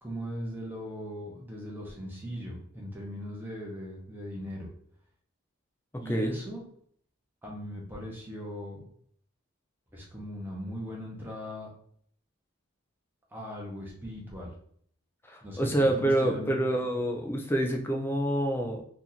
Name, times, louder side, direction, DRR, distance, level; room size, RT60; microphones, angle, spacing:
voice 1, 0.0-4.7 6.0-6.6 7.4-8.8 9.9-11.7 13.3-14.5 15.4-16.6, equal, 10° right, -3 dB, 0.8 m, -39 dB
voice 2, 6.1-6.4 15.3-18.8, right 1 dB, 10° left, 3 dB, 0.4 m, -27 dB
2.9 x 2.5 x 3.9 m, 0.62 s
head